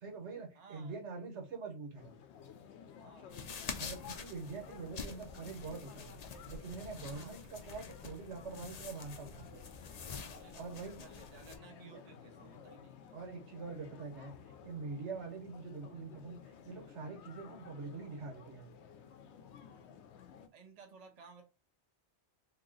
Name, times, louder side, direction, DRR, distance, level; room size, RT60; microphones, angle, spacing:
voice 1, 0.0-2.1 3.7-9.6 10.5-11.0 11.8-12.0 13.1-14.3 14.6-16.4 16.6-18.7, right 4 dB, 80° right, 3 dB, 1.4 m, -45 dB
voice 2, 0.5-1.0 3.0-3.5 7.1-7.4 10.3-13.0 20.5-21.4, right 5 dB, 40° right, 3 dB, 0.8 m, -57 dB
sound 1, 2.0-20.5, left 7 dB, 75° left, 0.8 m, -55 dB
sound 2, 3.3-11.6, left 5 dB, 50° left, 0.5 m, -47 dB
2.9 x 2.8 x 3.9 m, 0.28 s
omnidirectional pair, 1.2 m